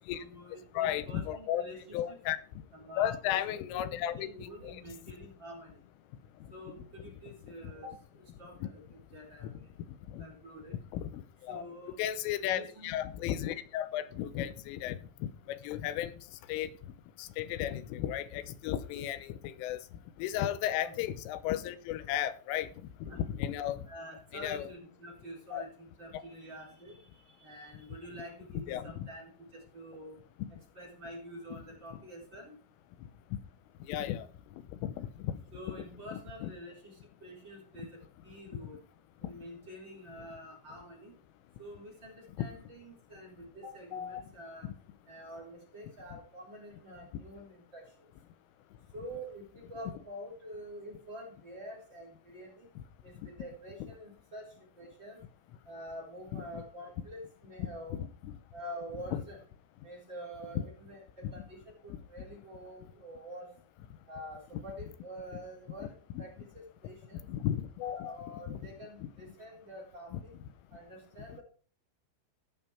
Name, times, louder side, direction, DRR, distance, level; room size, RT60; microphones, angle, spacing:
voice 1, 0.1-2.2 2.7-5.8 6.5-9.7 10.2-10.7 11.5-12.0 12.4-13.0 20.8-20.9 23.0-23.2 23.9-30.2 30.7-32.6 35.5-38.8 39.2-41.1 41.6-44.7 45.1-48.1 48.9-52.7 53.0-55.2 55.7-58.0 58.5-59.4 59.8-63.5 64.1-67.2 67.9-70.3 70.7-71.4, equal, 25° right, -3 dB, 3.9 m, -47 dB
voice 2, 0.7-1.6 1.9-2.4 3.0-4.8 7.6-7.7 8.6-8.7 9.4-9.5 10.1-10.3 10.9-11.6 12.0-16.1 16.5-16.7 17.2-19.8 20.2-22.7 23.0-23.9 24.3-24.7 25.5-25.6 26.1-26.2 28.7-29.1 30.4-30.5 33.3-33.4 33.9-34.3 34.7-35.4 36.1-36.5 39.2-39.3 42.4-42.5 43.9-44.2 44.6-44.7 46.1-46.2 52.8-52.9 56.3-56.6 57.6-58.3 61.2-61.3 66.1-66.2 67.3-68.2 68.5-68.6 70.1-70.2, left 11 dB, 90° left, 12 dB, 3.4 m, -35 dB
17.0 x 5.7 x 4.4 m, 0.42 s
omnidirectional pair, 5.6 m